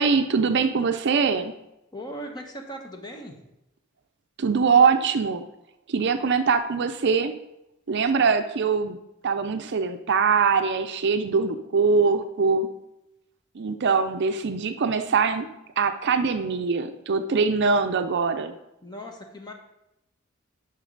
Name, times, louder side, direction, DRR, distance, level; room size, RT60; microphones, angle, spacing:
voice 1, 0.0-1.5 4.4-5.4 5.9-7.4 7.9-9.0 9.2-12.7 13.5-15.5 15.8-18.5, right 5 dB, 55° right, 8 dB, 0.5 m, -22 dB
voice 2, 1.9-3.5 18.8-19.5, equal, 20° left, 3 dB, 1.0 m, -38 dB
9.5 x 5.8 x 3.9 m, 0.88 s
head